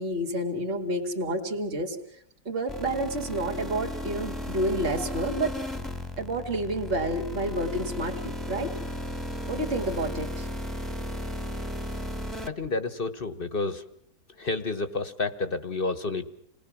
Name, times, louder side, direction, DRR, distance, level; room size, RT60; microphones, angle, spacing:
voice 1, 0.0-2.0 2.4-5.5 6.2-8.7 9.5-10.5, right 1 dB, 35° right, 1 dB, 2.6 m, -29 dB
sound 1, 2.7-12.5, left 1 dB, ahead, 1.4 m, -35 dB
voice 2, 12.5-13.8 14.4-16.3, left 3 dB, 35° left, 12 dB, 1.2 m, -30 dB
28.5 x 20.0 x 7.3 m, 0.68 s
omnidirectional pair, 1.8 m